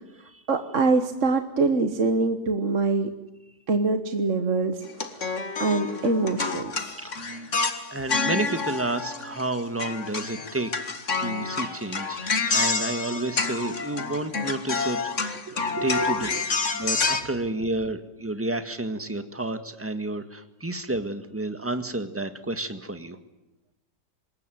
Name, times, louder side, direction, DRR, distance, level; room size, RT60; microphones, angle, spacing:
voice 1, 0.5-3.1 3.7-4.8 5.1-6.9 15.5-16.4, right 3 dB, 45° right, 8 dB, 1.5 m, -25 dB
sound 1, 4.9-9.5 9.8-17.2, left 4 dB, 40° left, 2.1 m, -28 dB
voice 2, 7.0-7.5 7.9-10.7 11.2-16.3 16.7-23.2, right 2 dB, 10° right, 9 dB, 1.6 m, -30 dB
26.0 x 21.0 x 9.4 m, 0.97 s
omnidirectional pair, 2.0 m